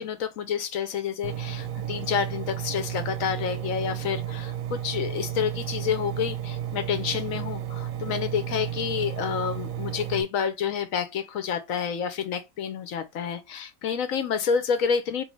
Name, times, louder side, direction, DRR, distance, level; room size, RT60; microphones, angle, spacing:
voice 1, 0.0-15.2, left 7 dB, 65° left, 1.0 m, -29 dB
Engine, 1.2-10.2, right 10 dB, 65° right, 1.0 m, -33 dB
3.9 x 3.2 x 3.0 m
omnidirectional pair, 1.7 m